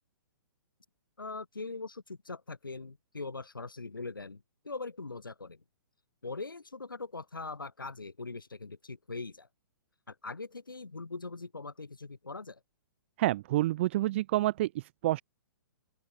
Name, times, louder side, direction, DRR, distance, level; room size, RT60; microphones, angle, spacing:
voice 1, 1.2-5.6 6.2-9.5 10.1-12.6, left 3 dB, 80° left, 0.8 m, -41 dB
voice 2, 13.2-15.2, right 16 dB, 35° right, 0.4 m, -28 dB
open air
figure-of-eight pair, 120°, 11 cm